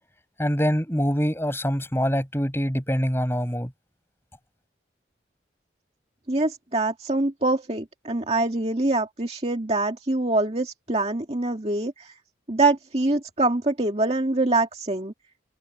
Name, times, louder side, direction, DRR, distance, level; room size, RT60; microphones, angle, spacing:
voice 1, 0.4-3.7, equal, 10° left, 7.6 m, -24 dB
voice 2, 6.3-12.1 12.5-15.1, right 2 dB, 30° right, 2.1 m, -24 dB
head